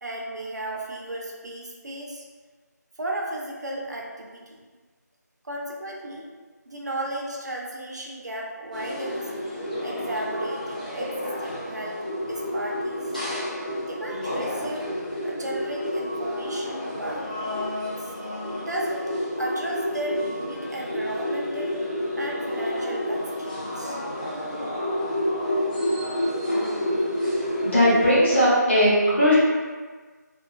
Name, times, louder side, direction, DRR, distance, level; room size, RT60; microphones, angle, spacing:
voice 1, 0.0-2.3 3.0-4.6 5.4-6.3 6.7-9.3 9.8-13.1 13.8-14.9 15.2-17.3 17.8-18.1 18.6-19.1 19.4-21.8 22.1-24.0, right 1 dB, 70° right, -2 dB, 0.5 m, -34 dB
sound 1, 8.7-28.1, left 1 dB, 25° left, 0.4 m, -29 dB
voice 2, 27.6-29.3, equal, 40° left, -9 dB, 0.9 m, -18 dB
2.4 x 2.3 x 2.3 m, 1.4 s
figure-of-eight pair, 180°, 10 cm